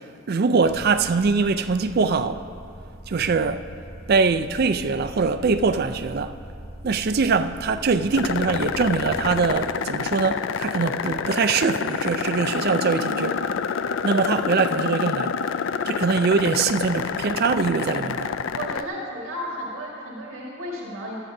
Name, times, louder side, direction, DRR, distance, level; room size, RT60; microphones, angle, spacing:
voice 1, 0.3-2.4 3.1-3.6 4.1-6.3 6.8-13.4 14.0-15.4 15.9-18.3, right 4 dB, 45° right, 0.4 m, -22 dB
sound 1, 0.6-9.6, right 1 dB, 20° right, 1.7 m, -41 dB
sound 2, 8.1-18.8, left 6 dB, 60° left, 0.3 m, -27 dB
voice 2, 18.5-21.1, equal, 70° right, 1.8 m, -33 dB
18.5 x 12.0 x 2.7 m
head